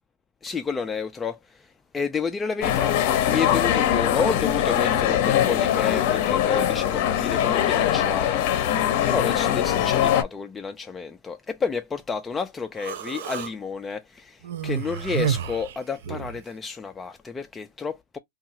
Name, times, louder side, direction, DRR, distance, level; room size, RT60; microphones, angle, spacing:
voice 1, 0.4-3.0 3.2-8.5 9.1-18.2, left 5 dB, 15° left, 0.3 m, -30 dB
sound 1, 2.6-10.2, left 11 dB, 50° left, 0.6 m, -22 dB
Human voice, 12.8-13.5 14.4-16.4, right 9 dB, 70° right, 0.4 m, -30 dB
2.7 x 2.3 x 2.7 m
hypercardioid pair, 130°, 0 cm